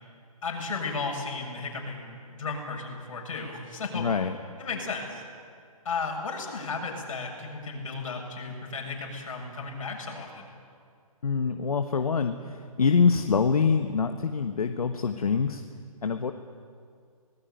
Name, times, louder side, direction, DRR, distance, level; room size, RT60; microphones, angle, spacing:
voice 1, 0.4-4.1 4.6-5.2 5.8-10.5, left 4 dB, 60° left, 1 dB, 7.3 m, -34 dB
voice 2, 3.9-4.3 11.2-15.6 16.0-16.3, left 5 dB, 80° left, 7 dB, 1.4 m, -25 dB
24.5 x 19.5 x 9.3 m, 2.2 s
hypercardioid pair, 150°, 19 cm